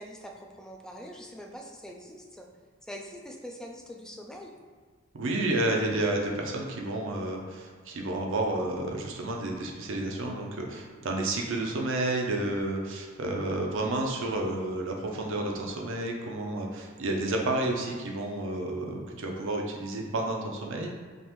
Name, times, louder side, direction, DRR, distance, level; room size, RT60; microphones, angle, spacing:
voice 1, 0.0-2.5 2.8-4.6, equal, 5° left, 0 dB, 0.3 m, -43 dB
voice 2, 5.1-20.9, right 2 dB, 65° right, 1 dB, 0.6 m, -30 dB
5.3 x 2.5 x 3.0 m, 1.5 s
head